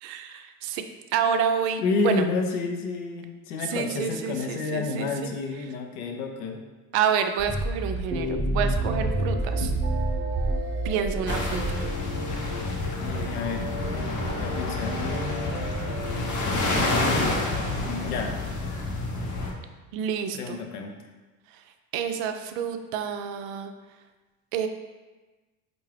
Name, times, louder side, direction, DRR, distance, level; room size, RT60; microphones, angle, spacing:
voice 1, 0.0-0.8 1.1-2.3 3.7-5.3 6.9-9.7 10.8-11.8 19.9-20.6 21.9-23.7 24.5-24.7, right 7 dB, 60° right, 7 dB, 0.5 m, -28 dB
voice 2, 1.8-6.6 13.0-13.7 14.4-15.6 17.7-18.3 20.3-20.9, left 4 dB, 70° left, 4 dB, 0.7 m, -30 dB
sound 1, 7.4-12.1, right 1 dB, ahead, 0.9 m, -28 dB
sound 2, 8.6-16.8, right 2 dB, 25° right, 0.8 m, -37 dB
sound 3, 11.3-19.5, left 2 dB, 40° left, 0.8 m, -28 dB
4.5 x 2.5 x 3.2 m, 1.2 s
hypercardioid pair, 65°, 46 cm